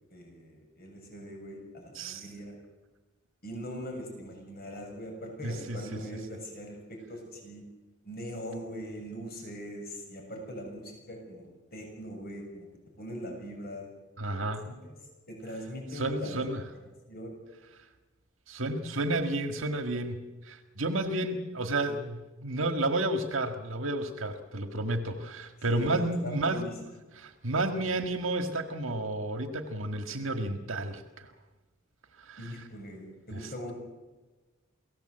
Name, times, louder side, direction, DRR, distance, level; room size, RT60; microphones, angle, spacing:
voice 1, 0.1-2.6 3.4-7.6 8.0-12.7 13.0-13.9 14.6-14.9 15.3-16.4 17.1-17.4 25.7-26.8 27.8-28.0 32.4-33.8, equal, 50° left, 2 dB, 6.9 m, -41 dB
voice 2, 1.9-2.3 5.4-6.0 14.2-14.7 15.9-16.6 18.5-26.7 27.2-31.3 32.2-32.7 33.3-33.5, right 2 dB, 65° right, 7 dB, 1.8 m, -31 dB
29.5 x 18.0 x 8.0 m, 1.2 s
head